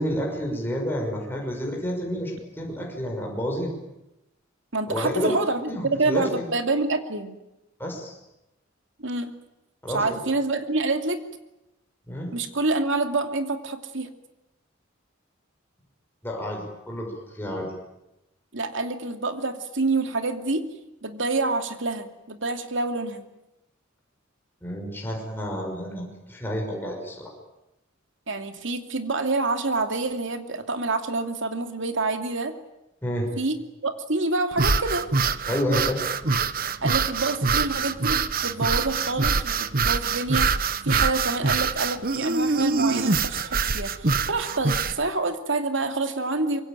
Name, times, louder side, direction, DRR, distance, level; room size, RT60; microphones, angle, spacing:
voice 1, 0.0-3.7 4.9-5.3 5.7-6.5 7.8-8.1 9.8-10.2 12.1-12.3 16.2-17.7 24.6-27.3 33.0-33.3 35.5-36.0, equal, 10° left, -1 dB, 6.1 m, -30 dB
voice 2, 4.7-7.4 9.0-9.3 9.9-11.2 12.3-14.1 18.5-20.7 21.0-23.2 28.3-32.5 33.4-35.0 36.8-40.6 40.8-46.6, right 3 dB, 65° right, 6 dB, 2.7 m, -27 dB
sound 1, 34.5-45.0, right 4 dB, 45° right, 1.1 m, -24 dB
25.5 x 23.0 x 9.1 m, 0.93 s
head